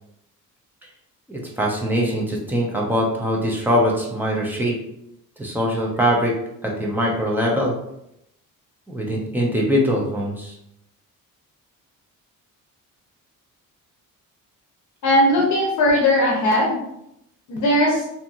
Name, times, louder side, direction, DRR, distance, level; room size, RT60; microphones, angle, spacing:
voice 1, 1.3-4.8 5.4-6.3 6.6-7.7 8.9-10.5, equal, 5° right, -2 dB, 0.4 m, -22 dB
voice 2, 15.0-16.8 17.5-18.0, left 1 dB, 60° left, -2 dB, 0.7 m, -18 dB
2.8 x 2.6 x 2.4 m, 0.79 s
cardioid pair, 170°, 33 cm